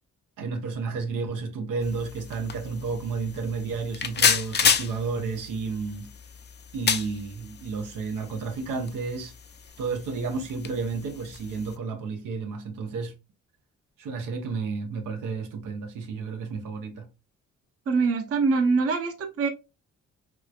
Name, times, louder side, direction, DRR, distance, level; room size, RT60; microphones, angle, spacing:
voice 1, 0.4-6.1 6.7-9.3 9.8-13.1 14.0-17.1, right 4 dB, 90° right, 0.8 m, -32 dB
sound 1, 1.8-11.8, left 7 dB, 35° left, 0.4 m, -31 dB
voice 2, 17.9-19.5, right 4 dB, 50° right, 0.7 m, -24 dB
3.2 x 3.1 x 2.3 m
cardioid pair, 95°, 31 cm